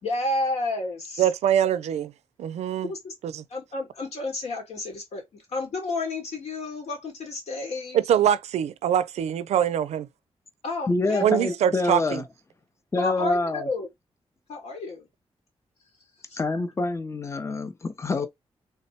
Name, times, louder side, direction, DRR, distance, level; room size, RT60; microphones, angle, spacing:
voice 1, 0.0-1.2 2.9-3.1 3.5-8.0 10.6-11.4 13.0-13.9 14.5-15.1 16.3-16.4, left 2 dB, 80° left, 1.6 m, -31 dB
voice 2, 1.2-2.1 2.4-2.9 3.2-3.4 7.9-10.1 11.2-12.2, right 10 dB, 90° right, 0.4 m, -23 dB
voice 3, 10.9-12.2 12.9-13.7 16.4-18.3, left 2 dB, 25° left, 0.5 m, -26 dB
3.3 x 2.1 x 4.1 m
cardioid pair, 80°, 11 cm